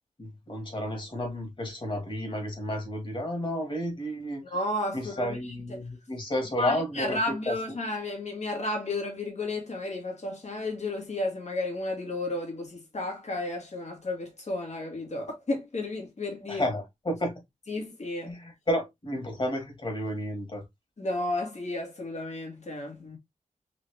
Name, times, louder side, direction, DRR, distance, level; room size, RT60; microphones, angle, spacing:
voice 1, 0.2-4.4 4.9-7.2 7.5-7.6 16.5-17.3 18.2-20.6, left 1 dB, 40° left, 2.2 m, -31 dB
voice 2, 4.4-5.5 6.6-16.6 17.7-18.3 21.0-23.2, left 2 dB, 60° left, 2.0 m, -32 dB
4.0 x 3.0 x 3.3 m
wide cardioid pair, 70°, 13 cm